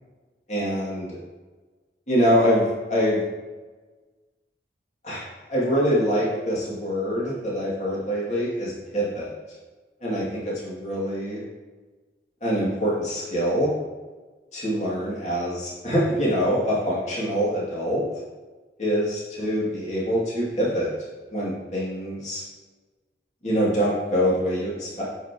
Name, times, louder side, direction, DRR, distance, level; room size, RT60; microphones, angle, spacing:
voice 1, 0.5-1.2 2.1-3.2 5.0-9.3 10.0-11.4 12.4-13.7 14.5-18.1 18.8-20.9 21.3-22.4 23.4-25.0, equal, 40° left, -7 dB, 2.5 m, -24 dB
9.5 x 5.6 x 3.0 m, 1.3 s
head